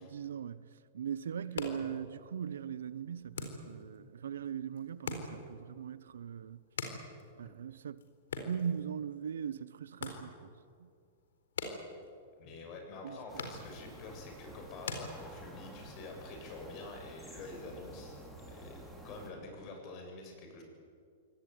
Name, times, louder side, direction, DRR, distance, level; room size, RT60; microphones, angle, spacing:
voice 1, 0.0-6.6 7.4-8.0 8.4-10.9 13.0-13.2, right 8 dB, 90° right, 0.9 m, -40 dB
sound 1, 1.3-15.8, left 4 dB, 85° left, 4.2 m, -46 dB
voice 2, 12.4-18.8 19.0-20.6, left 3 dB, 40° left, 7.8 m, -47 dB
sound 2, 13.3-19.3, right 1 dB, 5° left, 4.9 m, -50 dB
24.5 x 18.5 x 9.6 m
hypercardioid pair, 140°, 0 cm